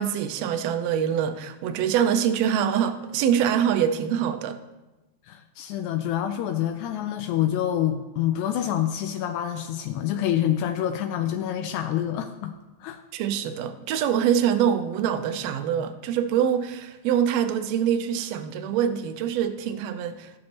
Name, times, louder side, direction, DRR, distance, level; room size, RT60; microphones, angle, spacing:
voice 1, 0.0-4.6 13.1-20.3, right 9 dB, 75° right, 9 dB, 1.7 m, -24 dB
voice 2, 5.3-12.5 12.8-13.0, left 11 dB, 85° left, 6 dB, 2.0 m, -27 dB
15.5 x 6.3 x 2.9 m, 1.1 s
omnidirectional pair, 3.3 m